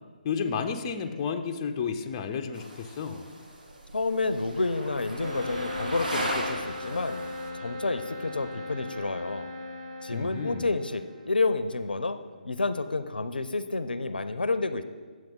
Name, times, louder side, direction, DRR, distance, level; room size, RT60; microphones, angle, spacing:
voice 1, 0.2-3.3 10.1-10.7, left 6 dB, 25° left, 5 dB, 0.5 m, -32 dB
sound 1, 2.5-7.5, right 1 dB, 65° right, 1.4 m, -37 dB
voice 2, 3.9-7.2 7.5-9.5 10.0-12.2 12.4-14.8, left 3 dB, 80° left, 12 dB, 0.5 m, -29 dB
sound 2, 5.2-11.6, left 2 dB, 35° right, 1.5 m, -38 dB
9.0 x 7.5 x 3.7 m, 1.5 s
figure-of-eight pair, 145°, 5 cm